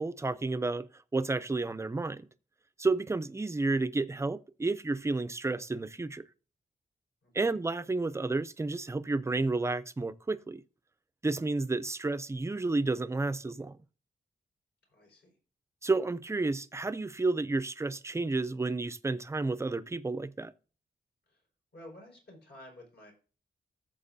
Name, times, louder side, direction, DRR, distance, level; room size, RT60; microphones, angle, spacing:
voice 1, 0.0-2.3 2.8-6.2 7.3-10.6 11.2-13.8 15.8-20.5, right 3 dB, 15° right, 0.4 m, -31 dB
voice 2, 7.2-7.6 14.9-15.4 21.3-21.4 21.7-23.1, left 1 dB, 70° left, 4.7 m, -52 dB
14.0 x 7.4 x 2.6 m
wide cardioid pair, 175°, 18 cm